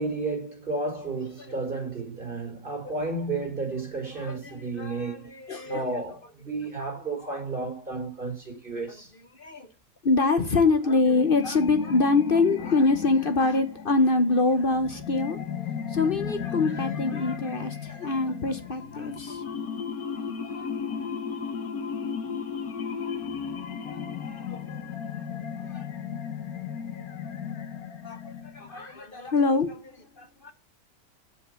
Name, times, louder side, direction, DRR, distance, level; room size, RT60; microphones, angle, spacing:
voice 1, 0.0-5.3 5.7-9.1, right 3 dB, 35° right, 5.3 m, -32 dB
voice 2, 4.2-5.9 7.2-7.4 9.4-9.7 10.0-15.4 15.9-19.4 20.4-20.6 24.2-24.8 25.7-25.8 28.0-30.5, left 3 dB, 40° left, 1.1 m, -25 dB
sound 1, 10.9-28.8, left 7 dB, 80° left, 1.6 m, -35 dB
7.8 x 6.7 x 8.2 m
omnidirectional pair, 1.5 m